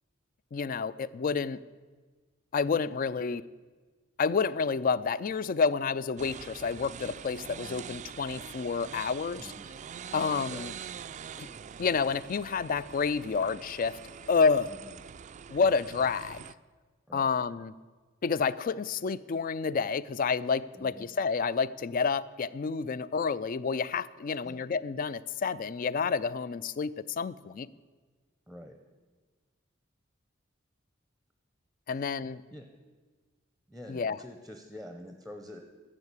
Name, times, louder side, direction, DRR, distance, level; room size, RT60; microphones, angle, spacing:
voice 1, 0.5-1.6 2.5-3.4 4.2-9.5 10.1-10.7 11.4-11.5 11.8-14.0 14.3-14.7 15.5-16.4 17.1-17.7 18.2-27.7 31.9-32.4 33.9-34.2, left 5 dB, 45° left, 18 dB, 0.4 m, -29 dB
sound 1, 6.2-16.5, right 7 dB, 35° right, 0.3 m, -44 dB
voice 2, 9.4-9.7 10.1-10.6 14.7-14.9 17.1-17.3 20.8-21.1 24.4-24.6 28.5-28.8 32.5-32.7 33.7-35.6, left 1 dB, ahead, 5 dB, 0.7 m, -46 dB
12.0 x 7.5 x 8.1 m, 1.4 s
head